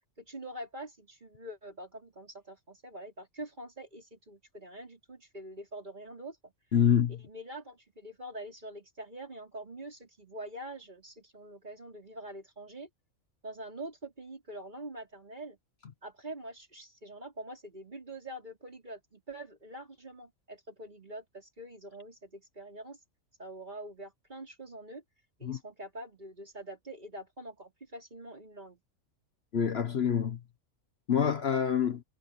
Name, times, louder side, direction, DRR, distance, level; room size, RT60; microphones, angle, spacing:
voice 1, 0.2-6.5 7.1-12.9 13.4-15.6 16.0-23.0 23.4-25.0 25.4-28.8, right 1 dB, 35° right, 4.8 m, -45 dB
voice 2, 6.7-7.2 25.4-25.6 29.5-30.4 31.1-32.0, left 8 dB, 55° left, 1.2 m, -26 dB
omnidirectional pair, 1.4 m